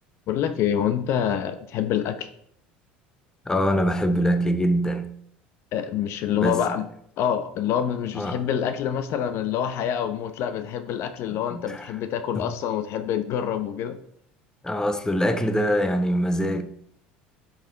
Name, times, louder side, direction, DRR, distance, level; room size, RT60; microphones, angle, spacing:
voice 1, 0.3-2.3 5.7-6.8 7.2-14.0, left 9 dB, 55° left, 0.8 m, -26 dB
voice 2, 3.5-5.1 6.4-6.6 8.1-8.4 11.5-11.8 12.3-12.5 14.6-16.6, equal, 10° left, 1.0 m, -23 dB
9.9 x 5.8 x 4.0 m
hypercardioid pair, 75°, 5 cm